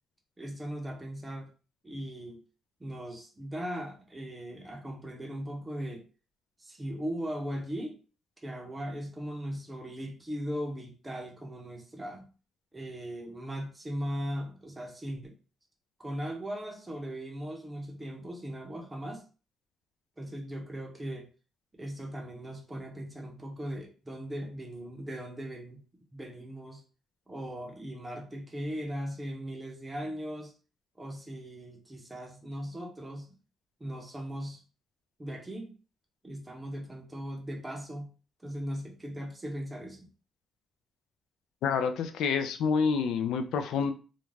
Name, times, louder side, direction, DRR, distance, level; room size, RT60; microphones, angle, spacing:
voice 1, 0.4-1.5 1.8-2.4 2.8-6.0 6.6-8.0 8.4-12.3 12.7-15.3 16.0-19.2 20.2-21.3 21.8-25.8 26.1-26.8 27.3-30.5 31.0-33.4 33.8-34.6 35.2-35.7 36.2-38.1 38.4-40.1, equal, 15° right, 1 dB, 0.6 m, -38 dB
voice 2, 41.6-43.9, left 6 dB, 85° left, 7 dB, 0.4 m, -28 dB
2.5 x 2.2 x 3.1 m, 0.35 s
cardioid pair, 155°, 0 cm